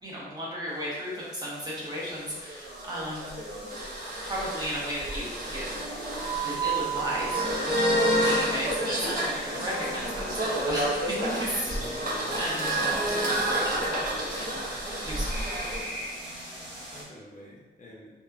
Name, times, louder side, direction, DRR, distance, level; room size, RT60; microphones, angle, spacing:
voice 1, 0.0-3.3 4.3-5.6 6.4-14.7 15.0-15.6, equal, 20° right, -7 dB, 0.8 m, -35 dB
sound 1, 0.7-17.0, equal, 90° right, 1.0 m, -43 dB
sound 2, 2.1-15.8, right 1 dB, 55° right, 0.6 m, -29 dB
voice 2, 11.6-12.5 16.9-18.1, left 1 dB, 45° left, -5 dB, 0.6 m, -47 dB
2.9 x 2.2 x 2.3 m, 1.3 s
wide cardioid pair, 125°, 18 cm